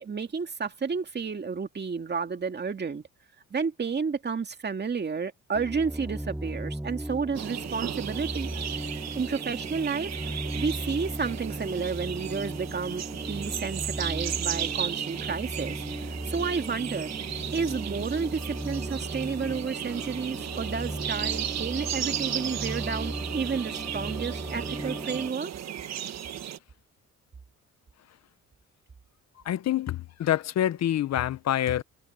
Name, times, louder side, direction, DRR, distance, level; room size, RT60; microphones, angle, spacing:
voice 1, 0.0-3.0 3.5-8.5 9.1-15.8 16.0-17.1 17.5-25.5, right 5 dB, 35° right, 2.4 m, -31 dB
sound 1, 5.5-25.3, right 1 dB, 5° right, 0.8 m, -36 dB
sound 2, 7.3-26.6, right 10 dB, 60° right, 1.5 m, -35 dB
voice 2, 29.4-31.8, left 11 dB, 60° left, 0.8 m, -26 dB
cardioid pair, 90°, 30 cm